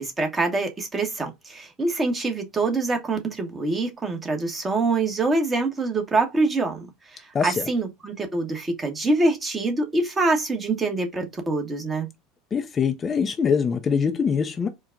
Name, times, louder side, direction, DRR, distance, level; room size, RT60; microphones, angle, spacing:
voice 1, 0.0-12.1, right 3 dB, 20° right, 1.2 m, -25 dB
voice 2, 12.5-14.7, left 6 dB, 30° left, 0.6 m, -23 dB
4.4 x 2.4 x 3.7 m
figure-of-eight pair, 75°, 0 cm